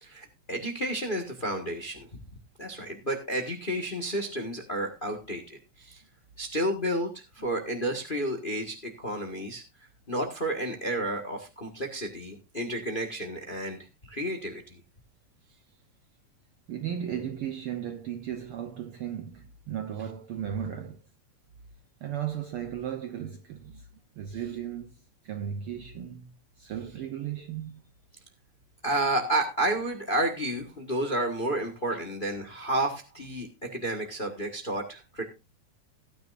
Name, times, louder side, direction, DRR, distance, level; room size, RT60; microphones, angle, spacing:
voice 1, 0.0-2.1 2.6-6.0 6.4-9.6 10.1-13.8 14.1-14.8 28.8-35.2, right 1 dB, 30° left, 1.0 m, -31 dB
voice 2, 16.7-21.0 22.0-23.9 24.2-26.3 26.6-27.8, right 9 dB, 70° right, 1.3 m, -36 dB
17.0 x 9.7 x 2.5 m
omnidirectional pair, 3.3 m